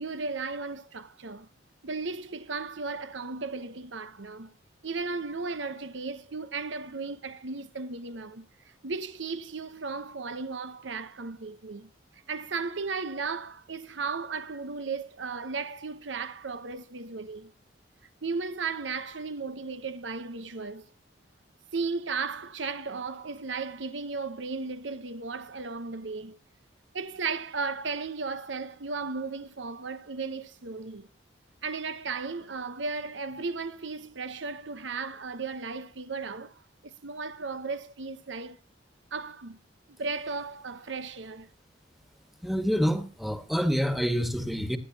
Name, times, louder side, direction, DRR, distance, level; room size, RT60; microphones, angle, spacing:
voice 1, 0.0-1.5 1.8-4.5 4.8-8.5 8.8-11.9 12.3-17.5 18.2-20.9 21.7-26.4 26.9-31.1 31.6-38.6 39.1-39.6 39.9-41.5, right 4 dB, 80° right, 1.0 m, -35 dB
voice 2, 42.4-44.8, equal, ahead, 1.6 m, -27 dB
27.0 x 10.5 x 2.9 m
head